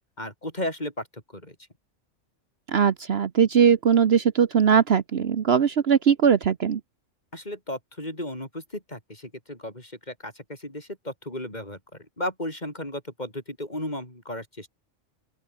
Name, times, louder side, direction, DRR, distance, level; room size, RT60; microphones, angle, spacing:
voice 1, 0.2-1.6 7.3-14.7, left 1 dB, 35° left, 7.4 m, -35 dB
voice 2, 2.7-6.8, right 7 dB, 60° right, 1.1 m, -20 dB
open air
omnidirectional pair, 1.3 m